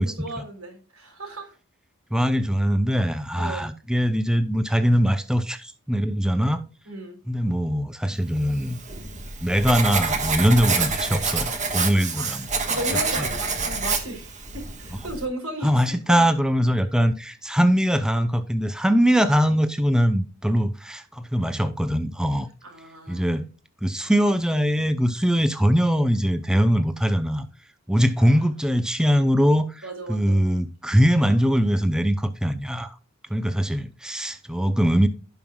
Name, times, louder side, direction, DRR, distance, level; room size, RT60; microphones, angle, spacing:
voice 1, 0.0-1.6 3.3-3.6 6.9-7.2 12.0-12.4 12.7-16.3 22.6-23.2 28.2-28.5 29.8-30.4, right 1 dB, 90° right, 3.9 m, -35 dB
voice 2, 2.1-6.6 7.3-8.8 9.4-12.5 13.2-13.3 15.6-22.5 23.1-23.4 23.8-27.5 27.9-32.9 33.3-35.1, equal, 5° right, 0.6 m, -22 dB
Writing, 8.5-15.3, right 4 dB, 35° right, 1.5 m, -27 dB
16.0 x 5.5 x 2.3 m
head